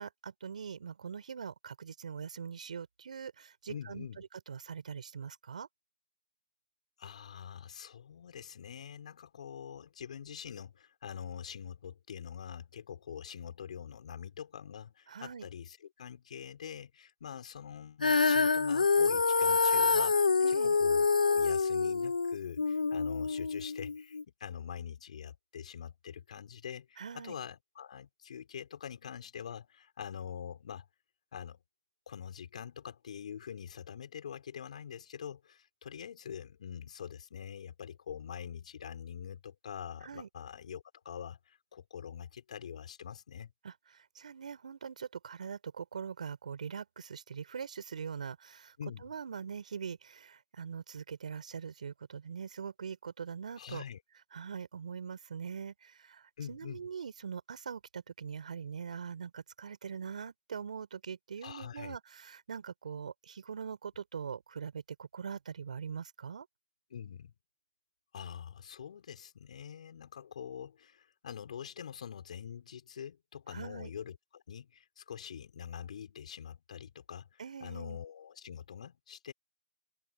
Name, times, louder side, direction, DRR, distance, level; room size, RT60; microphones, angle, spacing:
voice 1, 0.0-5.7 15.1-15.5 20.4-20.8 27.0-27.4 40.0-40.3 43.6-43.7 44.1-48.7 49.0-53.8 54.3-66.4 73.5-73.9 77.4-78.0, right 6 dB, 70° right, 5.1 m, -42 dB
voice 2, 3.7-4.2 7.0-30.9 31.3-31.6 32.1-43.5 48.8-49.1 53.6-54.0 56.4-56.9 61.4-62.0 66.9-67.3 68.1-79.3, left 8 dB, 60° left, 6.5 m, -45 dB
Female singing, 18.0-24.2, left 4 dB, 85° left, 1.0 m, -27 dB
hypercardioid pair, 140°, 4 cm